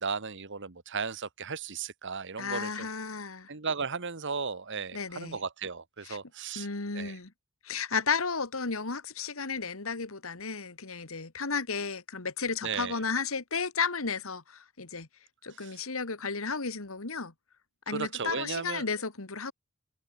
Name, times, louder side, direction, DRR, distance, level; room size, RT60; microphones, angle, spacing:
voice 1, 0.0-2.9 3.5-6.7 6.9-7.2 12.6-13.0 15.6-15.8 17.9-18.8, right 5 dB, 60° right, 1.6 m, -35 dB
voice 2, 2.4-3.5 4.9-5.4 6.0-6.2 6.6-7.3 7.6-15.1 15.4-17.3 17.9-19.5, left 5 dB, 70° left, 1.8 m, -33 dB
head